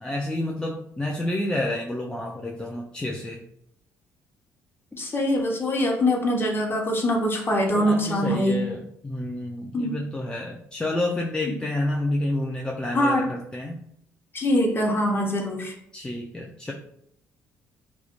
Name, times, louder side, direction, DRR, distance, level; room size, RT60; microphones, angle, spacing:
voice 1, 0.0-3.4 7.7-13.8 15.9-16.7, left 1 dB, 10° left, -1 dB, 0.3 m, -29 dB
voice 2, 5.0-8.7 9.7-10.0 11.5-11.6 12.9-13.3 14.3-15.7, left 1 dB, 30° left, 0 dB, 0.7 m, -23 dB
2.2 x 2.0 x 2.9 m, 0.71 s
hypercardioid pair, 50°, 8 cm